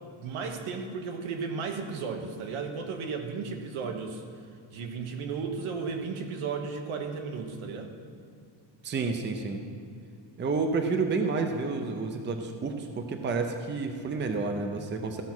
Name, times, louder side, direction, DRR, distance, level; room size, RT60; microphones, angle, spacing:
voice 1, 0.0-4.2 4.7-7.9, right 5 dB, 75° right, 4 dB, 1.4 m, -34 dB
voice 2, 8.8-9.6 10.4-15.2, right 4 dB, 25° right, 5 dB, 0.6 m, -30 dB
15.0 x 5.8 x 6.1 m, 2.4 s
cardioid pair, 160°, 49 cm